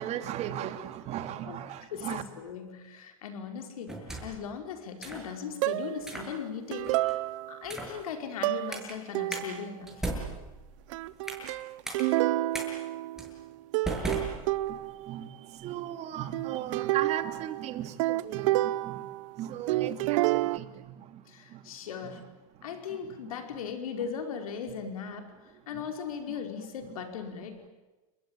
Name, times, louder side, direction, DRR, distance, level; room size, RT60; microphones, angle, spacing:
voice 1, 0.0-2.2 14.7-19.1 19.4-21.2 21.5-21.6 22.0-22.1 22.9-23.0 23.2-23.3 25.7-25.8 26.3-26.4, right 11 dB, 40° right, 9 dB, 2.7 m, -37 dB
voice 2, 1.5-7.2 7.5-10.0 21.3-22.2 22.6-25.3 25.7-27.7, left 7 dB, 85° left, 5 dB, 5.2 m, -38 dB
sound 1, 3.9-4.5 5.0-5.3 6.0-6.3 6.8-7.1 7.6-8.0 8.7-8.9 9.3-9.4 9.9-11.5 11.8-12.0 12.5-12.7 13.2-13.3 13.8-14.9, right 2 dB, 5° right, 7.7 m, -37 dB
sound 2, 5.6-6.1 6.7-7.7 8.4-8.8 9.1-9.7 10.9-13.5 13.7-15.1 16.3-19.4 19.7-20.6, right 17 dB, 65° right, 0.9 m, -29 dB
29.5 x 22.0 x 9.2 m, 1.1 s
supercardioid pair, 125°, 18 cm